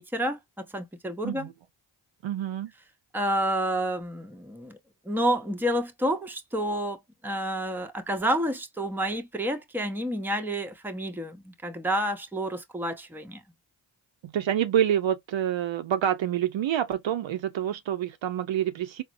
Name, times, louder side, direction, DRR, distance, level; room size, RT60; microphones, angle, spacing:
voice 1, 0.0-1.5 3.1-4.8 5.0-13.4, right 1 dB, 5° right, 0.6 m, -29 dB
voice 2, 2.2-2.7 14.2-19.0, right 10 dB, 65° right, 0.6 m, -27 dB
4.1 x 2.0 x 2.5 m
cardioid pair, 45°, 50 cm